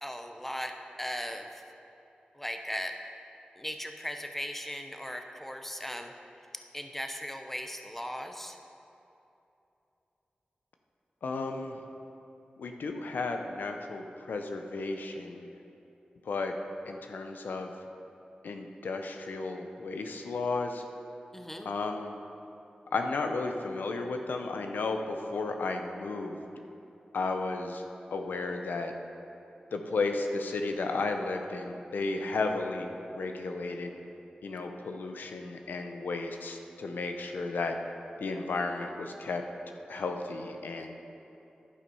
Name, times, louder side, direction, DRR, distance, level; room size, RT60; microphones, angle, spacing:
voice 1, 0.0-1.6 2.3-2.9 3.6-6.1 6.7-8.6 21.3-21.7, equal, 10° left, 5 dB, 0.8 m, -38 dB
voice 2, 11.2-11.8 12.6-15.5 16.3-16.5 16.9-17.7 18.4-20.8 21.6-22.2 22.9-26.5 27.1-27.8 28.1-28.9 29.7-33.9 34.4-37.7 38.2-39.4 39.9-40.9, left 3 dB, 90° left, 5 dB, 0.6 m, -33 dB
11.5 x 5.4 x 5.5 m, 2.9 s
cardioid pair, 50°, 3 cm